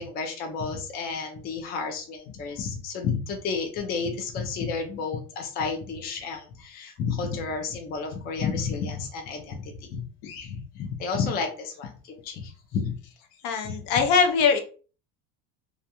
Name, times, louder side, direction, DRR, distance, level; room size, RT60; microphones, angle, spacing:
voice 1, 0.0-10.0 10.4-13.0 13.6-14.0, left 5 dB, 30° left, 3 dB, 0.5 m, -31 dB
voice 2, 13.4-14.6, left 5 dB, 65° left, 5 dB, 0.7 m, -22 dB
2.4 x 2.2 x 2.8 m, 0.38 s
cardioid pair, 150°, 31 cm